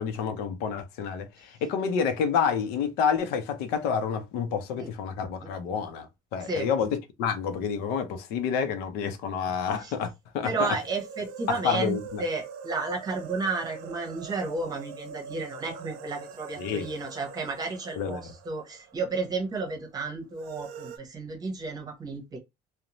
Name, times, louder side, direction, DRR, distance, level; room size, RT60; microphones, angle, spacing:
voice 1, 0.0-10.7 11.5-12.2 16.6-16.9 18.0-18.3, left 6 dB, 85° left, 0.6 m, -29 dB
voice 2, 10.4-22.4, right 3 dB, 25° right, 0.9 m, -32 dB
Moaning Wraith, 10.5-19.3 19.6-19.7 20.3-21.0, right 6 dB, 90° right, 0.5 m, -43 dB
2.6 x 2.1 x 2.9 m
cardioid pair, 145°, 16 cm